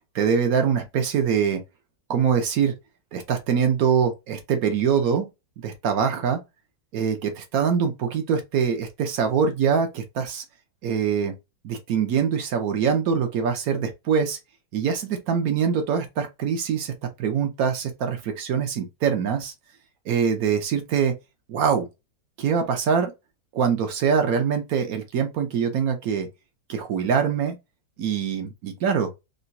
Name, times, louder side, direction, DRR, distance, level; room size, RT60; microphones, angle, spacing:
voice 1, 0.1-1.6 2.1-2.7 3.1-5.3 5.6-6.4 6.9-10.4 10.8-11.3 11.6-14.4 14.7-19.5 20.1-21.1 21.5-21.9 22.4-23.1 23.5-26.3 26.7-27.6 28.0-29.1, right 7 dB, 65° right, 0.9 m, -23 dB
3.8 x 2.2 x 2.5 m
omnidirectional pair, 2.2 m